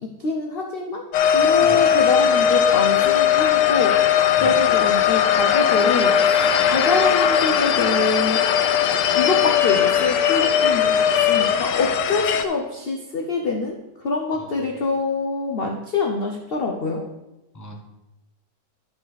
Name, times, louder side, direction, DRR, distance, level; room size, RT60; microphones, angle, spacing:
voice 1, 0.0-8.4 9.1-13.8 14.0-17.0, left 3 dB, 50° left, 1 dB, 0.7 m, -25 dB
sound 1, 1.1-12.5, left 9 dB, 90° left, 1.3 m, -19 dB
voice 2, 1.6-1.9 4.4-4.6 14.4-14.5 17.5-17.8, left 1 dB, 15° left, 1 dB, 0.9 m, -36 dB
11.5 x 5.1 x 4.1 m, 0.97 s
omnidirectional pair, 1.8 m